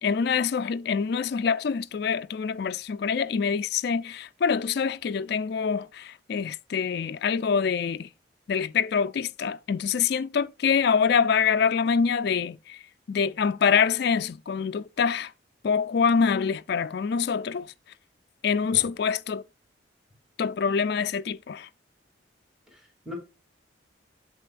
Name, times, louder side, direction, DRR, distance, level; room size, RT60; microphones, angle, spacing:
voice 1, 0.0-8.1 8.5-12.8 13.1-15.3 15.6-17.7 18.4-19.4 20.4-21.7, left 6 dB, 55° left, 0.3 m, -25 dB
voice 2, 22.7-23.1, left 2 dB, 5° right, 2.6 m, -41 dB
7.8 x 7.6 x 2.4 m
head